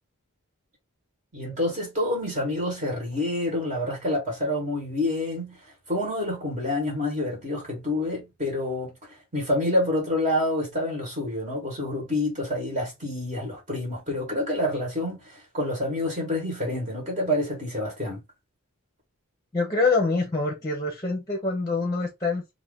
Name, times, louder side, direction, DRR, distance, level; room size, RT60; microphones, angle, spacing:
voice 1, 1.3-18.2, left 1 dB, 35° right, 1.3 m, -28 dB
voice 2, 19.5-22.4, left 3 dB, 15° left, 0.8 m, -25 dB
2.7 x 2.5 x 3.6 m
head